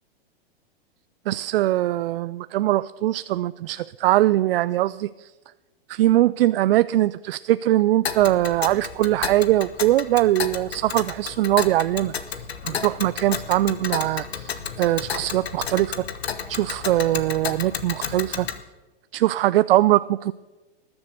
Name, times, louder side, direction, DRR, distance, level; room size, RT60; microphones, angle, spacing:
voice 1, 1.3-5.3 5.9-12.1 12.6-16.0 16.5-18.5 19.1-20.3, right 15 dB, 70° right, 16 dB, 0.4 m, -21 dB
Tick, 8.0-18.6, left 7 dB, 85° left, 1.2 m, -32 dB
20.0 x 7.1 x 6.5 m, 1.2 s
hypercardioid pair, 115°, 30 cm